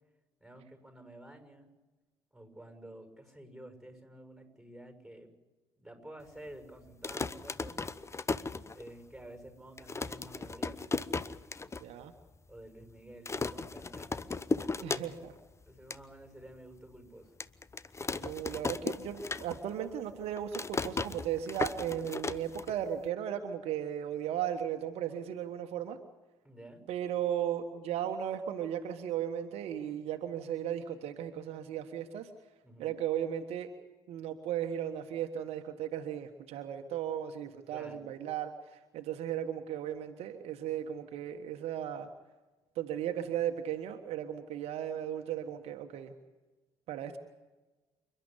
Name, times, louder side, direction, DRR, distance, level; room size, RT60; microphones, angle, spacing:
voice 1, 0.4-1.7 2.3-5.3 5.8-7.9 8.7-10.8 12.5-14.2 14.8-15.1 15.7-17.3 26.4-26.8 32.6-32.9 37.7-38.1, right 1 dB, ahead, 5 dB, 6.8 m, -51 dB
sound 1, 6.9-9.2 9.5-9.6 9.8-11.8 12.2-12.3 12.5-12.9 13.3-15.4 15.7-16.0 16.5-16.6 17.4-19.8 20.1-23.1, left 3 dB, 25° left, 0.9 m, -36 dB
voice 2, 11.8-12.1 14.8-15.3 18.1-26.0 26.9-32.3 32.8-33.7 34.1-42.1 42.7-46.1 46.9-47.2, right 10 dB, 60° right, 6 dB, 1.4 m, -36 dB
28.5 x 11.5 x 10.0 m, 1.2 s
figure-of-eight pair, 50°, 12 cm